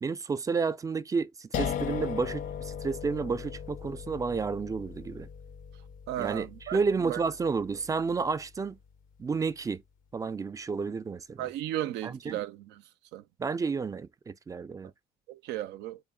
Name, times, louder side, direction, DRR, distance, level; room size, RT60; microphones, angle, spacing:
voice 1, 0.0-5.3 6.2-8.8 9.2-9.8 10.1-11.5 12.0-12.4 13.4-14.9, right 5 dB, 20° right, 0.3 m, -31 dB
sound 1, 1.5-8.5, left 8 dB, 55° left, 0.4 m, -38 dB
voice 2, 6.1-6.8 7.0-7.2 11.4-12.8 13.1-13.2 15.3-16.0, right 13 dB, 80° right, 0.4 m, -35 dB
3.6 x 3.6 x 2.3 m
cardioid pair, 110°, 17 cm